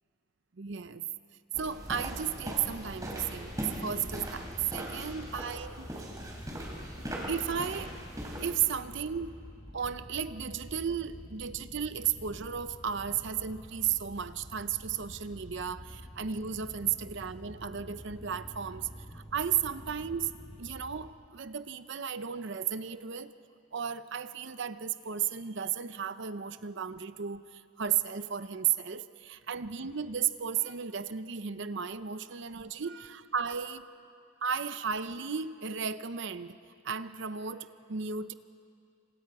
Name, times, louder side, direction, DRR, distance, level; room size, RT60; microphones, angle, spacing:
voice 1, 0.6-1.0 1.6-5.9 7.3-7.9 8.4-9.4 9.7-18.9 19.1-20.3 20.6-23.3 23.7-33.9 34.4-36.6 36.8-38.3, right 8 dB, 55° right, 12 dB, 0.6 m, -34 dB
sound 1, 1.5-8.5, equal, 15° right, 3.7 m, -40 dB
sound 2, 2.4-21.1, equal, 25° left, 1.5 m, -48 dB
28.5 x 26.5 x 4.8 m, 2.4 s
head